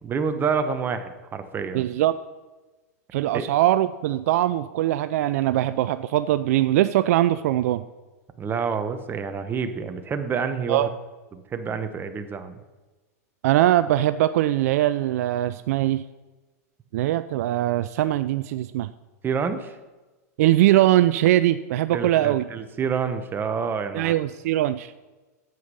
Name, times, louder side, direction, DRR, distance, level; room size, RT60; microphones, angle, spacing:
voice 1, 0.0-1.9 3.3-3.4 8.4-10.9 11.3-12.6 19.2-19.8 21.9-24.1, right 6 dB, 25° right, 8 dB, 1.0 m, -28 dB
voice 2, 1.7-2.2 3.1-7.8 10.7-10.9 13.4-16.0 16.9-18.9 20.4-22.4 23.9-24.9, right 14 dB, 70° right, 13 dB, 0.4 m, -21 dB
9.4 x 8.1 x 5.4 m, 1.2 s
hypercardioid pair, 110°, 9 cm